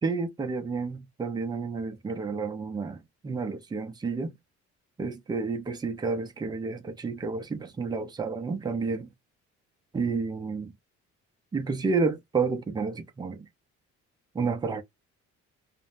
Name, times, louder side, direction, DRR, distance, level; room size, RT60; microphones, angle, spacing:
voice 1, 0.0-4.4 5.0-9.1 9.9-10.7 11.5-13.5 14.3-14.8, right 4 dB, 15° right, 0.4 m, -30 dB
2.4 x 2.0 x 3.0 m
cardioid pair, 170°, 29 cm